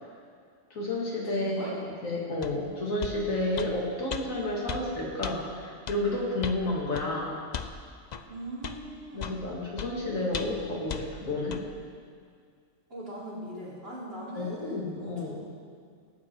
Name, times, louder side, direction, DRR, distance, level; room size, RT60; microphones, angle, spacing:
voice 1, 0.7-1.8 2.0-7.4 9.1-11.6 14.4-15.3, left 2 dB, 90° left, -3 dB, 2.7 m, -31 dB
voice 2, 1.3-1.8 8.2-9.4 12.9-15.3, right 1 dB, 45° right, -9 dB, 4.5 m, -41 dB
sound 1, 2.4-2.6 3.0-3.2 3.6-3.7 4.1-4.2 4.7-4.8 5.2-5.4 5.9-6.0 6.4-6.6 6.9-7.1 7.5-7.7 8.1-8.2 8.6-8.8 9.2-9.4 9.8-9.9 10.3-10.6 10.9-11.0 11.5-11.6, left 7 dB, 50° left, 0.5 m, -35 dB
18.0 x 8.6 x 4.6 m, 2.2 s
omnidirectional pair, 1.4 m